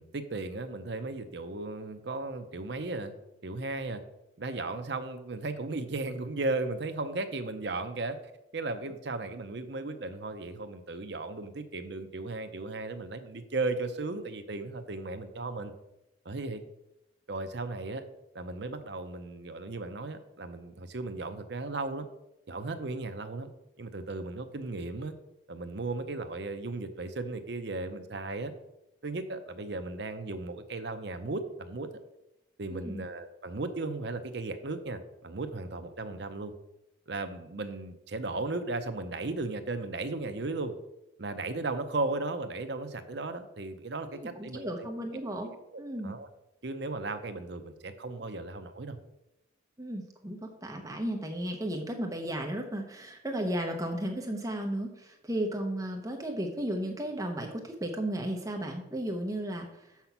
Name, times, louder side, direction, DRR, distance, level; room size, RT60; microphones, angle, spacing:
voice 1, 0.0-3.1 3.4-4.0 4.4-8.2 8.5-15.7 16.2-16.6 17.3-18.0 18.3-22.1 22.5-23.5 23.8-25.1 25.5-28.5 29.0-31.9 32.6-36.5 37.1-40.7 41.2-44.7 45.5-46.3 46.6-49.0, right 2 dB, 60° right, 8 dB, 0.7 m, -36 dB
voice 2, 32.7-33.0 44.1-45.5 45.8-46.2 49.8-60.1, right 1 dB, 15° right, 3 dB, 0.8 m, -34 dB
6.8 x 5.8 x 5.8 m, 0.89 s
head